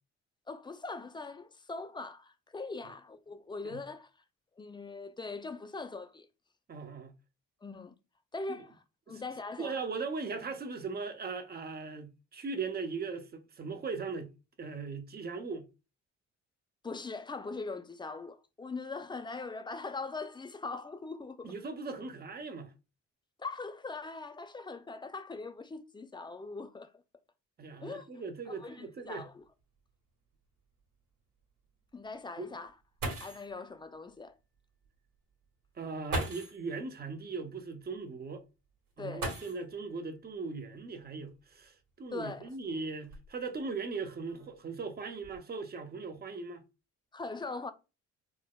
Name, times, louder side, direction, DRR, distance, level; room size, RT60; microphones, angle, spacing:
voice 1, 0.5-4.1 4.6-6.3 7.6-7.9 8.3-8.8 9.1-9.8 16.8-21.5 23.4-26.9 27.8-29.4 31.9-32.7 33.2-34.4 39.0-39.3 42.1-42.5 47.1-47.7, left 3 dB, 15° left, 0.4 m, -41 dB
voice 2, 6.7-7.1 8.5-8.6 9.6-14.3 14.6-15.7 21.4-22.7 27.6-29.3 32.4-32.5 35.8-38.4 39.0-46.6, right 4 dB, 30° right, 0.6 m, -39 dB
sound 1, 29.1-29.2 29.6-29.7 30.3-30.4 32.7-32.8 33.0-33.6 34.8-34.9 36.1-36.7 39.1-39.9 41.3-41.4 42.1-43.6 44.3-44.6 45.0-45.4, right 2 dB, 80° right, 1.6 m, -39 dB
4.6 x 2.2 x 2.2 m
cardioid pair, 90°, 30 cm